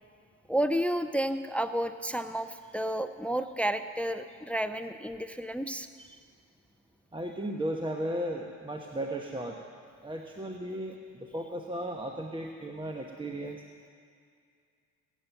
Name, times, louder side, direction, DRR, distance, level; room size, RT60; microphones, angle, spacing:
voice 1, 0.5-6.1, right 1 dB, 5° left, 10 dB, 0.5 m, -31 dB
voice 2, 7.1-9.6 10.0-13.6, right 1 dB, 15° right, 2 dB, 1.0 m, -35 dB
16.5 x 9.2 x 7.0 m, 2.2 s
supercardioid pair, 80°, 38 cm